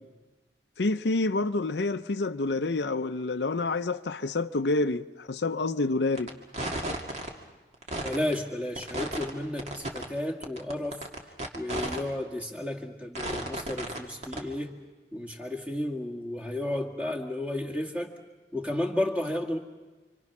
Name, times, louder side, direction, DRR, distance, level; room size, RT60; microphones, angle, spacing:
voice 1, 0.8-6.3, left 3 dB, 85° left, 0.7 m, -28 dB
sound 1, 6.2-6.3 6.5-7.3 7.7-8.3 8.8-9.3 9.6-10.1 10.4-12.0 12.4-12.5 13.2-14.0 14.2-14.4, right 1 dB, 40° right, 2.2 m, -33 dB
voice 2, 8.0-11.0 11.5-14.8 15.1-18.1 18.5-19.6, left 1 dB, 10° right, 2.0 m, -32 dB
29.0 x 25.5 x 6.0 m
head